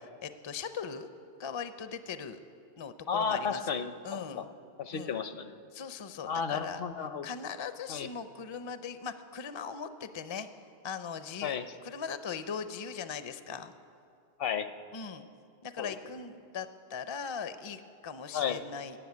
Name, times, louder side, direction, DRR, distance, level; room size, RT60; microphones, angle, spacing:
voice 1, 0.2-1.1 1.4-2.4 2.8-3.7 4.0-4.5 4.9-5.1 5.7-6.8 7.2-10.5 10.8-11.6 11.8-13.7 14.9-15.2 15.6-18.9, left 6 dB, 35° left, 11 dB, 0.5 m, -39 dB
voice 2, 3.1-4.5 4.8-5.5 6.3-7.3 7.9-8.1 11.4-11.6 14.4-14.7 15.8-16.0 18.3-18.6, left 6 dB, 65° left, 10 dB, 0.9 m, -33 dB
15.0 x 8.6 x 9.6 m, 2.4 s
omnidirectional pair, 1.1 m